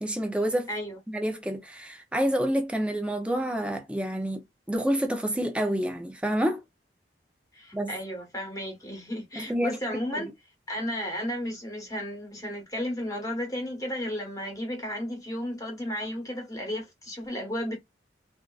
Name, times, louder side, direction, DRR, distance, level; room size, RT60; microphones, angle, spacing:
voice 1, 0.0-0.7 1.1-4.4 4.7-6.6 7.7-7.9 9.4-9.8 10.2-10.3, equal, 5° right, 0.5 m, -28 dB
voice 2, 0.7-1.0 7.5-10.3 10.7-17.8, equal, 20° left, 1.2 m, -33 dB
3.5 x 2.5 x 2.3 m
head